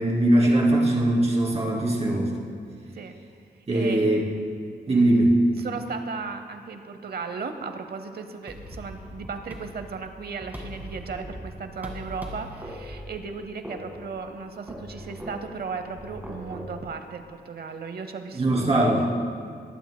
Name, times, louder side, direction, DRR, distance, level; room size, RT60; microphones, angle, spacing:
voice 1, 0.0-2.4 3.7-4.2 4.9-5.4 18.3-19.0, right 1 dB, 35° right, -4 dB, 2.7 m, -21 dB
voice 2, 3.7-4.1 5.5-19.1, right 5 dB, 60° right, 7 dB, 0.8 m, -36 dB
sound 1, 8.5-16.7, equal, 10° right, 1.8 m, -40 dB
21.5 x 10.5 x 2.2 m, 2.2 s
wide cardioid pair, 130°, 18 cm